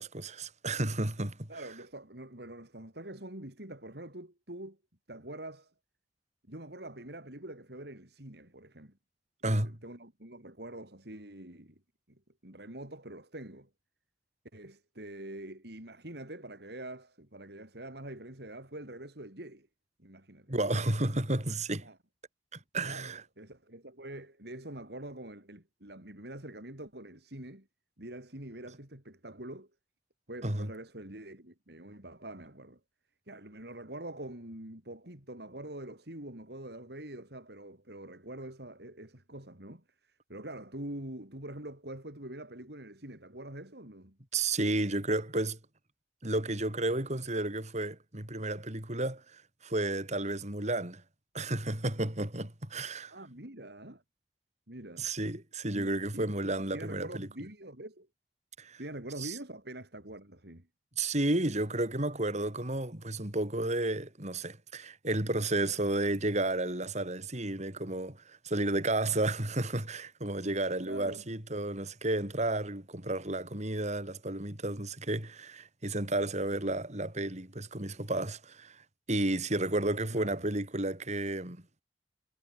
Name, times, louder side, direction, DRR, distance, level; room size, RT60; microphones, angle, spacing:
voice 1, 0.0-1.4 9.4-9.8 20.5-21.9 22.5-23.2 30.4-30.7 44.3-45.6 46.2-51.0 51.3-53.1 55.0-57.3 58.6-58.8 59.2-59.3 61.0-78.8 79.1-81.6, right 2 dB, 40° right, 4.1 m, -32 dB
voice 2, 1.5-4.8 5.1-5.7 6.5-9.0 9.4-11.8 12.1-13.7 14.5-19.7 20.0-20.5 21.8-22.0 22.8-27.7 28.0-29.7 30.3-32.8 33.3-44.2 53.1-54.0 54.7-55.1 55.7-56.3 56.7-58.1 58.8-60.7 70.8-71.2 80.1-80.4, right 1 dB, 65° right, 5.1 m, -45 dB
head